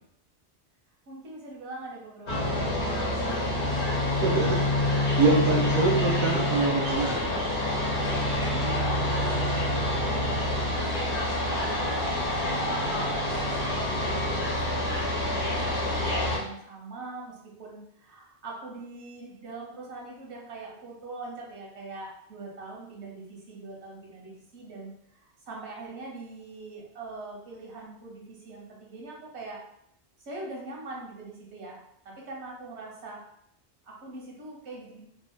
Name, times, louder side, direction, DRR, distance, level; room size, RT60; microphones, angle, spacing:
voice 1, 1.1-5.0 5.5-6.1 8.5-13.1 13.7-29.6 30.3-33.2 33.8-35.0, right 3 dB, 80° right, -3 dB, 1.0 m, -43 dB
sound 1, 2.3-16.4, left 1 dB, 50° left, 0.8 m, -27 dB
voice 2, 4.2-7.3, right 3 dB, 25° right, -4 dB, 0.3 m, -26 dB
2.8 x 2.0 x 2.2 m, 0.74 s
omnidirectional pair, 1.2 m